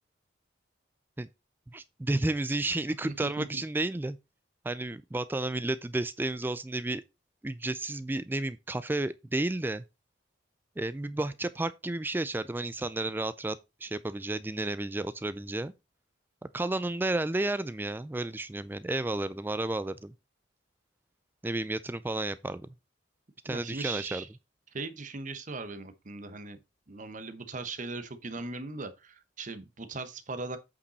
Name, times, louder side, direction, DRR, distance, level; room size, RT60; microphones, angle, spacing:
voice 1, 1.7-4.2 4.6-7.0 7.4-9.8 10.8-15.7 16.5-20.1 21.4-22.7 23.4-24.2, right 2 dB, 10° right, 0.3 m, -32 dB
voice 2, 3.0-3.6 23.5-24.3 24.7-26.6 26.9-30.6, right 3 dB, 40° right, 0.9 m, -39 dB
8.5 x 5.2 x 4.1 m
head